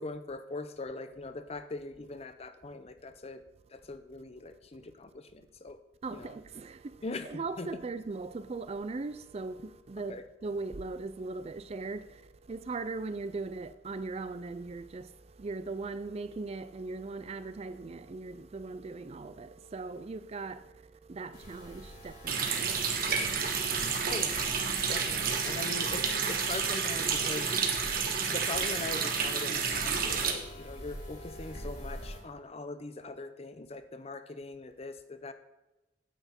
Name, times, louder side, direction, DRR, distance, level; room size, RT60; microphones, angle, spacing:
voice 1, 0.0-3.4 3.7-5.8 6.1-6.4 7.0-7.7 10.1-10.2 24.1-24.4 24.9-27.5 28.3-35.3, left 3 dB, 35° left, 0.7 m, -41 dB
voice 2, 6.0-22.8 23.1-23.4 23.8-24.0, right 3 dB, 35° right, 0.4 m, -39 dB
sound 1, 21.3-32.2, equal, 50° left, 3.7 m, -46 dB
Water tap faucet, 22.3-30.3, right 6 dB, 50° right, 1.3 m, -30 dB
9.1 x 8.0 x 4.4 m
head